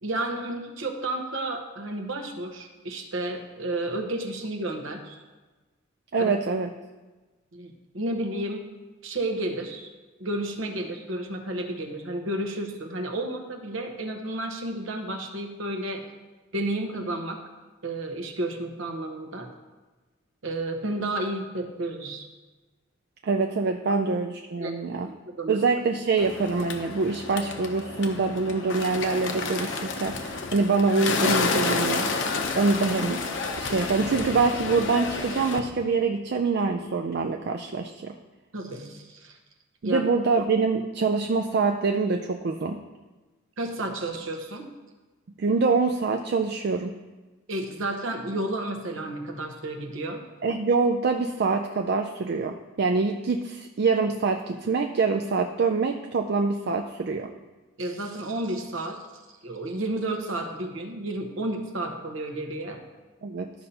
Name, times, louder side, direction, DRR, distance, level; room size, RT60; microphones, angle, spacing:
voice 1, 0.0-5.2 6.2-6.3 7.5-8.7 9.0-9.9 10.2-16.0 16.5-17.4 17.8-19.5 20.4-22.3 24.6-24.7 25.0-25.6 38.5-39.3 39.8-40.1 43.6-44.7 47.5-50.3 57.8-59.0 59.4-62.8, right 1 dB, 75° right, 4 dB, 1.0 m, -31 dB
voice 2, 6.1-6.7 23.2-25.1 25.5-32.1 32.6-33.2 33.6-38.1 39.8-42.8 45.4-46.9 50.4-57.3 63.2-63.5, right 4 dB, 55° right, 4 dB, 0.4 m, -25 dB
Bird, 26.2-35.6, left 4 dB, 65° left, 0.8 m, -30 dB
12.5 x 5.4 x 2.8 m, 1.2 s
head